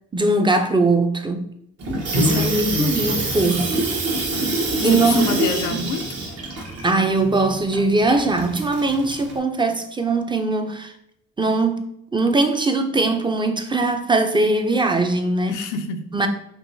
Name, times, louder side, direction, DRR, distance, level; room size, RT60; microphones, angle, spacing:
voice 1, 0.1-1.5 2.2-3.7 4.8-5.3 6.8-10.9 11.4-15.5 16.1-16.3, right 2 dB, 15° right, 0.5 m, -20 dB
Water tap faucet / Sink (filling or washing), 1.8-9.4, right 2 dB, 55° right, 1.0 m, -26 dB
voice 2, 2.1-3.1 4.8-6.2 15.5-16.2, left 5 dB, 85° left, 0.5 m, -26 dB
4.6 x 3.0 x 2.6 m
cardioid pair, 90°, 30 cm